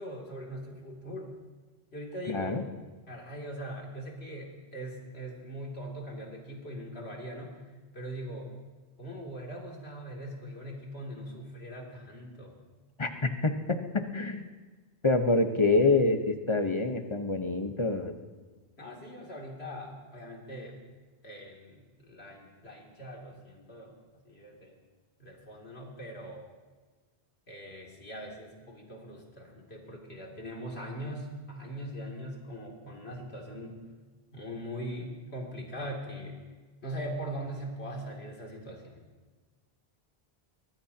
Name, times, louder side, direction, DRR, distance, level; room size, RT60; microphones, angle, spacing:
voice 1, 0.0-1.3 1.9-2.5 3.1-7.6 7.9-8.5 9.0-12.5 18.8-20.8 21.2-24.0 24.2-24.8 25.2-26.5 27.5-33.8 34.3-36.4 36.8-39.0, equal, 85° left, -1 dB, 3.1 m, -41 dB
voice 2, 2.3-2.6 13.0-14.4 15.0-18.1, left 3 dB, 30° left, 6 dB, 1.1 m, -26 dB
23.5 x 19.0 x 2.9 m, 1.4 s
omnidirectional pair, 1.0 m